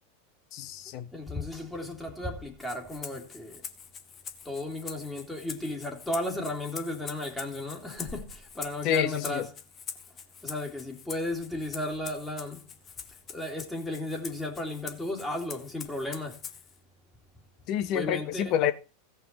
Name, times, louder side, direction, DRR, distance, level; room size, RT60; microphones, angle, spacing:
voice 1, 0.5-1.1 8.8-9.5 17.7-18.7, left 10 dB, 45° left, 1.3 m, -28 dB
voice 2, 1.1-3.6 4.4-9.5 10.4-12.6 13.3-16.4 17.9-18.5, left 1 dB, 10° left, 2.6 m, -34 dB
Rattle (instrument), 2.6-16.8, left 7 dB, 30° left, 1.4 m, -44 dB
16.5 x 5.7 x 4.3 m
figure-of-eight pair, 90°, 0 cm